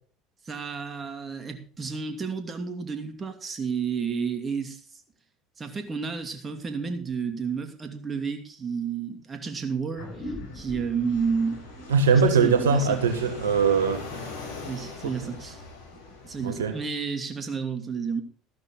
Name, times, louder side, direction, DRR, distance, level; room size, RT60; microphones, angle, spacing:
voice 1, 0.4-5.0 5.6-11.6 12.3-13.0 14.6-15.6 16.1-18.2, right 5 dB, 30° right, 6 dB, 2.7 m, -31 dB
sound 1, 9.9-14.8, left 1 dB, 60° left, 7.3 m, -43 dB
Fixed-wing aircraft airplane, 10.0-16.8, left 4 dB, 85° left, 4.2 m, -42 dB
voice 2, 11.9-14.0 16.4-16.7, right 5 dB, 85° right, 8 dB, 1.2 m, -21 dB
13.5 x 12.0 x 3.9 m, 0.41 s
hypercardioid pair, 70°, 0 cm